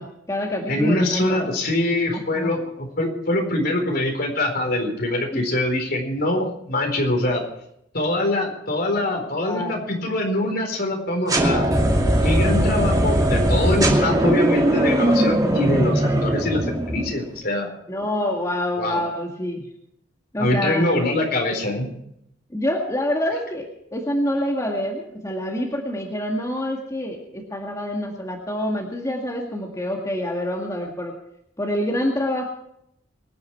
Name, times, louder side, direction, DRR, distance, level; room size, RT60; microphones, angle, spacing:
voice 1, 0.0-1.5 2.3-2.5 5.3-5.4 9.4-9.8 17.9-19.7 20.3-20.8 22.5-31.1 31.6-32.5, left 1 dB, 15° left, 0 dB, 2.0 m, -26 dB
voice 2, 0.7-7.4 7.9-11.7 12.2-17.7 18.8-19.0 20.4-21.9, left 1 dB, 55° left, 2 dB, 4.3 m, -23 dB
sound 1, 11.3-17.2, right 1 dB, 20° right, 2.6 m, -20 dB
24.5 x 9.7 x 4.6 m, 0.76 s
head